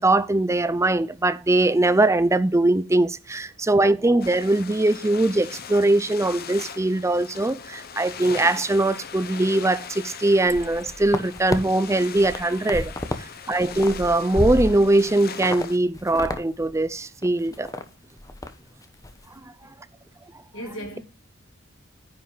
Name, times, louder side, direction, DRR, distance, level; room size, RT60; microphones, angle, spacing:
voice 1, 0.0-12.9 13.5-17.7, right 2 dB, 15° right, 0.5 m, -21 dB
sound 1, 4.2-15.8, left 7 dB, 50° left, 0.9 m, -40 dB
sound 2, 10.5-11.6 12.0-13.2 13.5-15.0 15.4-15.6 15.9-16.4 16.7-16.8 17.2-17.8 18.2-18.5 18.8-19.1, left 1 dB, 20° left, 0.9 m, -30 dB
voice 2, 19.4-19.9 20.5-21.0, equal, 85° left, 4.0 m, -40 dB
9.8 x 5.5 x 5.0 m
head